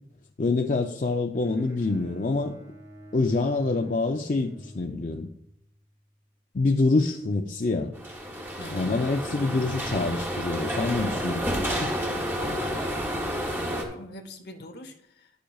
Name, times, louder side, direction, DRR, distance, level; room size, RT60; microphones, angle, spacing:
voice 1, 0.4-2.5 3.1-5.3 6.5-7.9 8.7-11.4 11.8-11.9, left 3 dB, 45° left, 3 dB, 0.5 m, -26 dB
Bowed string instrument, 1.3-5.6, right 1 dB, 50° right, 1.9 m, -48 dB
sound 1, 7.9-13.8, equal, 10° right, 1.2 m, -30 dB
voice 2, 8.6-9.1 11.0-11.2 12.4-15.3, left 1 dB, 65° left, 7 dB, 1.0 m, -43 dB
10.5 x 10.0 x 2.3 m, 0.77 s
head